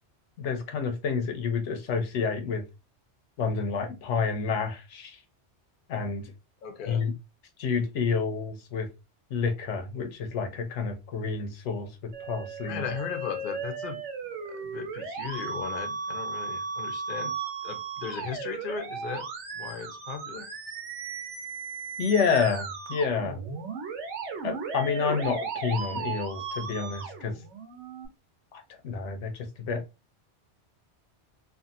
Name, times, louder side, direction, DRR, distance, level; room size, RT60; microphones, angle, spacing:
voice 1, 0.4-2.6 3.4-5.2 5.9-6.3 6.9-7.1 7.6-8.9 9.3-12.8 22.0-23.4 24.4-27.4 28.5-29.8, left 5 dB, 90° left, 1.0 m, -29 dB
voice 2, 6.6-7.0 12.7-14.0 14.4-17.3 17.6-19.2 19.6-20.5, left 6 dB, 55° left, 0.7 m, -37 dB
Musical instrument, 12.1-28.1, right 4 dB, 80° right, 1.1 m, -36 dB
2.7 x 2.5 x 2.5 m
omnidirectional pair, 1.2 m